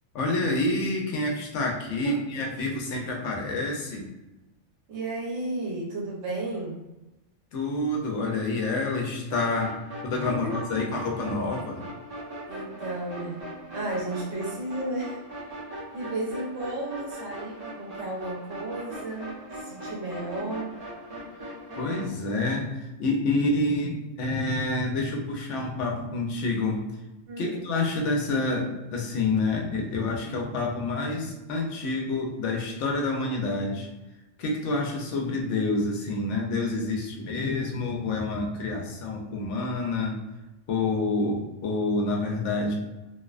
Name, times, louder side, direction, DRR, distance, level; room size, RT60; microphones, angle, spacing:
voice 1, 0.1-4.1 7.5-9.8 10.0-11.9 21.7-26.9 27.4-33.9 34.4-40.2 40.7-42.7, left 2 dB, 75° left, 1 dB, 0.9 m, -28 dB
voice 2, 4.9-6.8 10.3-10.6 12.5-13.4 13.7-20.7 27.3-27.7, right 2 dB, 70° right, -3 dB, 1.0 m, -33 dB
sound 1, 9.3-22.1, right 1 dB, 40° right, 0.7 m, -40 dB
2.6 x 2.1 x 2.3 m, 1.0 s
omnidirectional pair, 1.3 m